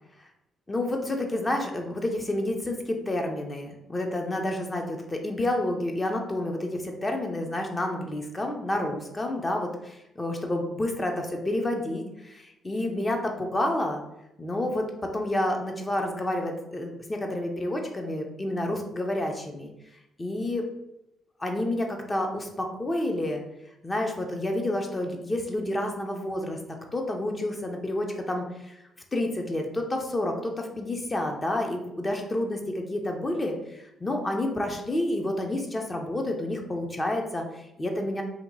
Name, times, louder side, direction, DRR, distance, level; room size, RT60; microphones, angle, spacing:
voice 1, 0.7-14.0 14.4-19.7 20.2-20.7 21.4-23.4 23.8-26.6 26.9-28.8 29.1-38.2, left 1 dB, 25° left, 3 dB, 0.6 m, -29 dB
2.9 x 2.2 x 3.8 m, 0.87 s
cardioid pair, 90°, 0 cm